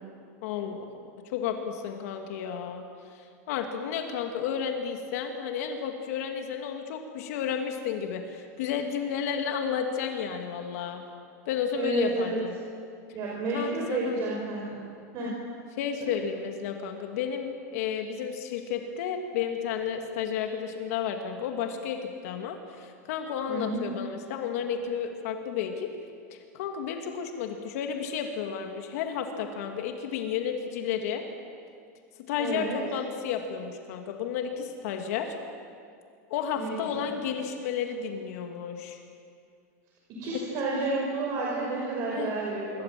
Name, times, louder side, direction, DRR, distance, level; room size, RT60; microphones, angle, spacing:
voice 1, 0.4-0.9 1.3-2.8 3.1-11.0 11.5-12.6 13.5-14.2 15.2-15.4 15.8-25.9 26.3-31.2 32.3-35.3 36.3-39.0 40.2-40.4 42.1-42.3, left 7 dB, 65° left, 4 dB, 2.4 m, -32 dB
voice 2, 11.7-12.4 13.1-14.8 15.1-15.3 23.5-23.8 32.4-32.8 36.6-37.1 40.2-42.8, right 3 dB, 40° right, -3 dB, 5.7 m, -31 dB
26.5 x 22.5 x 7.7 m, 2.3 s
supercardioid pair, 160°, 9 cm